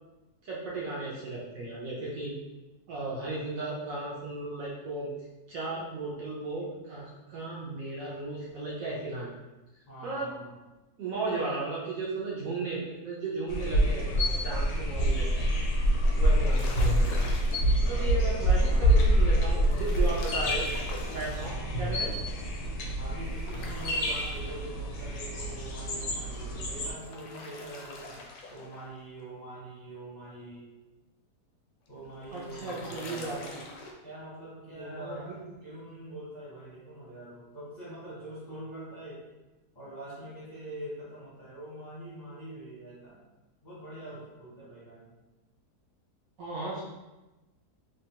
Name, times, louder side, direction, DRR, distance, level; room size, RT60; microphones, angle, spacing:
voice 1, 0.4-2.3 2.9-5.1 5.5-9.3 10.0-10.3 11.0-15.3 16.2-17.2 17.8-20.7 21.1-22.1 32.3-33.6 34.7-35.5 46.4-46.8, right 3 dB, 65° right, -6 dB, 0.9 m, -35 dB
voice 2, 9.9-10.5 17.8-20.4 21.4-21.9 23.0-28.2 28.5-30.7 31.9-33.5 34.0-39.2 39.7-43.2 43.6-45.1, right 1 dB, 40° left, -11 dB, 0.6 m, -44 dB
sound 1, 13.5-26.9, equal, 85° left, 1.2 m, -26 dB
sound 2, 16.3-17.8 19.6-21.6 23.3-24.9 26.8-28.9 31.9-33.9, left 3 dB, 70° left, 0.8 m, -44 dB
2.9 x 2.3 x 2.8 m, 1.1 s
omnidirectional pair, 1.8 m